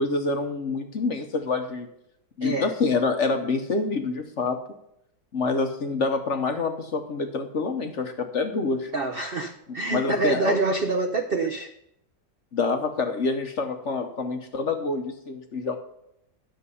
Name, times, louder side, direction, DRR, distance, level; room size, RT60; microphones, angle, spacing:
voice 1, 0.0-1.9 2.4-4.6 5.3-8.9 9.9-10.6 12.5-15.8, left 4 dB, 50° left, 6 dB, 1.0 m, -27 dB
voice 2, 8.9-11.7, right 3 dB, 55° right, 6 dB, 0.6 m, -26 dB
10.5 x 6.9 x 5.5 m, 0.77 s
omnidirectional pair, 1.9 m